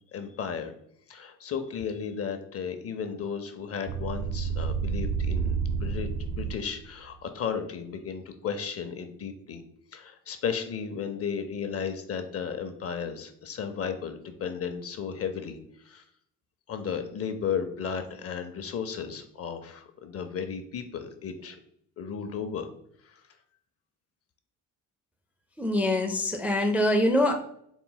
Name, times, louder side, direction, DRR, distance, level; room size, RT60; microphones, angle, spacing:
voice 1, 0.1-0.7 1.1-9.6 9.9-15.6 15.8-16.0 16.7-21.6 22.0-22.7, left 7 dB, 40° left, 8 dB, 0.6 m, -34 dB
sound 1, 3.9-6.9, right 5 dB, 65° right, 0.5 m, -30 dB
voice 2, 25.6-27.3, left 1 dB, 5° right, 3 dB, 0.4 m, -24 dB
4.0 x 2.2 x 3.8 m, 0.69 s
cardioid pair, 85°, 36 cm